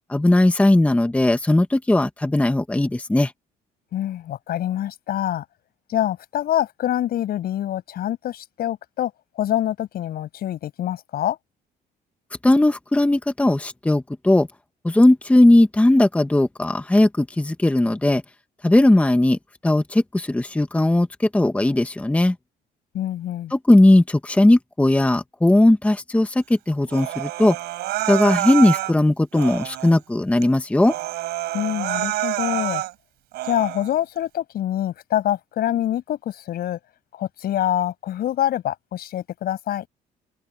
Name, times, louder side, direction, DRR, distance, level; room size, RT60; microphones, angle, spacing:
voice 1, 0.1-3.3 12.4-14.5 14.8-18.2 18.6-19.4 19.6-22.3 23.5-27.6 28.1-30.9, left 1 dB, 10° left, 1.2 m, -18 dB
voice 2, 3.9-5.4 5.9-9.1 9.4-11.4 22.9-23.5 31.5-32.8 33.4-36.8 37.2-39.9, left 12 dB, 65° left, 7.3 m, -25 dB
Human voice, 26.9-28.9 29.3-30.0 30.4-30.5 30.8-32.9 33.3-33.9, right 16 dB, 80° right, 3.7 m, -27 dB
open air
cardioid pair, 110°, 17 cm